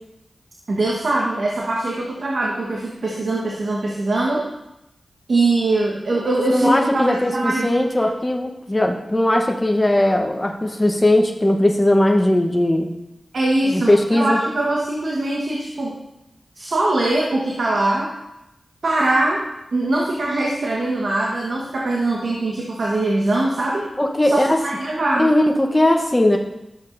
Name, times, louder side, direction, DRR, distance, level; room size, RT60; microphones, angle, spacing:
voice 1, 0.7-4.4 5.3-7.9 13.3-15.9 16.6-18.1 18.8-19.4 19.7-23.9 24.2-25.3, right 2 dB, 75° right, -3 dB, 1.3 m, -22 dB
voice 2, 6.5-12.9 13.7-14.4 24.0-24.6 25.2-26.4, left 1 dB, 20° left, 2 dB, 1.0 m, -18 dB
12.0 x 7.3 x 2.6 m, 0.91 s
cardioid pair, 45°, 0 cm